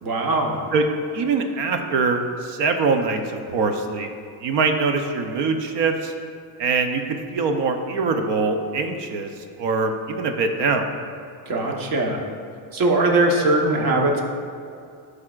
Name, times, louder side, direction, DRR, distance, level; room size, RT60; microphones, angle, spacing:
voice 1, 0.0-0.6 11.5-12.2 12.7-14.2, right 2 dB, 50° right, 1 dB, 1.2 m, -20 dB
voice 2, 1.1-4.1 4.4-6.1 6.6-9.3 9.6-10.9, right 4 dB, 65° right, 6 dB, 0.7 m, -23 dB
12.0 x 4.9 x 2.4 m, 2.3 s
cardioid pair, 120°, 46 cm